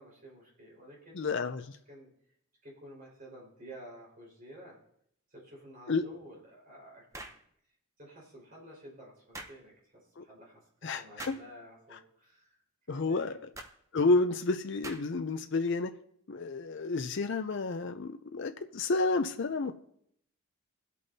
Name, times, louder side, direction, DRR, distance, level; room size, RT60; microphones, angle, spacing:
voice 1, 0.0-1.4 1.9-2.1 2.6-4.8 5.3-7.3 8.0-9.7 10.2-10.5 10.8-12.6 12.9-13.3, right 1 dB, 40° right, 4.8 m, -51 dB
voice 2, 1.1-1.6 5.9-6.1 10.2-10.3 10.8-11.4 12.9-13.3 13.9-15.9 16.3-19.7, left 3 dB, 55° left, 0.5 m, -30 dB
sound 1, 7.1-7.4 9.3-9.6 11.2-11.5 13.5-13.8 14.8-15.2, right 2 dB, 15° right, 0.6 m, -44 dB
21.5 x 8.3 x 2.8 m
head